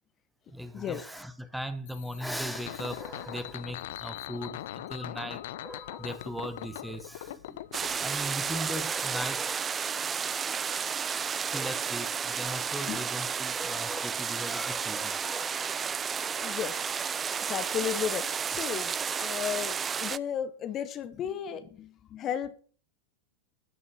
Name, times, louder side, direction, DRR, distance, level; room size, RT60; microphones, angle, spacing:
voice 1, 0.5-10.2 11.5-15.5, equal, ahead, 1.2 m, -38 dB
sound 1, 1.9-8.8, left 13 dB, 55° left, 0.7 m, -41 dB
sound 2, 7.7-20.2, right 6 dB, 20° right, 0.4 m, -32 dB
voice 2, 16.4-16.8 17.5-22.6, left 9 dB, 30° left, 1.2 m, -34 dB
14.0 x 7.0 x 6.4 m
figure-of-eight pair, 90°, 0 cm